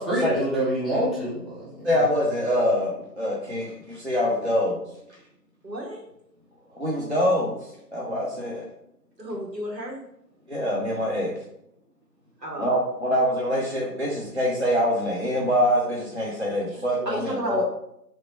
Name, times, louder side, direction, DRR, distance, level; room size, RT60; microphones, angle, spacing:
voice 1, 0.0-2.0, right 1 dB, ahead, -10 dB, 0.6 m, -27 dB
voice 2, 1.8-4.8 6.7-8.7 10.5-11.3 12.6-17.6, equal, 45° right, -4 dB, 0.5 m, -25 dB
voice 3, 5.6-6.0 9.2-10.0 12.4-12.7 16.7-17.6, right 1 dB, 85° right, -1 dB, 1.3 m, -32 dB
3.0 x 2.1 x 4.2 m, 0.78 s
figure-of-eight pair, 170°, 49 cm